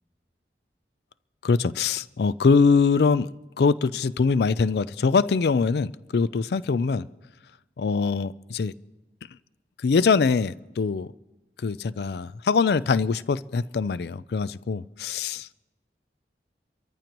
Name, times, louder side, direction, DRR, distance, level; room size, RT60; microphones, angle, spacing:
voice 1, 1.4-3.3 3.6-7.1 7.8-8.7 9.8-11.1 11.6-15.5, left 4 dB, 70° left, 0.4 m, -23 dB
28.0 x 14.0 x 3.0 m
head